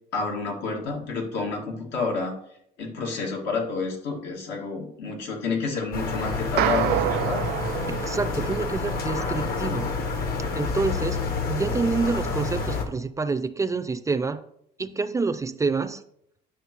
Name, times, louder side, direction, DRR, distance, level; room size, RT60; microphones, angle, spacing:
voice 1, 0.1-2.3 2.8-7.5, left 4 dB, 80° left, 0 dB, 1.9 m, -29 dB
sound 1, 5.9-12.8, left 4 dB, 65° left, 1.5 m, -28 dB
sound 2, 6.6-9.0, right 13 dB, 75° right, 0.4 m, -27 dB
voice 2, 7.9-9.9 10.5-14.4 14.8-16.0, right 4 dB, 20° right, 11 dB, 0.4 m, -27 dB
9.9 x 6.2 x 3.0 m, 0.71 s
cardioid pair, 110°, 17 cm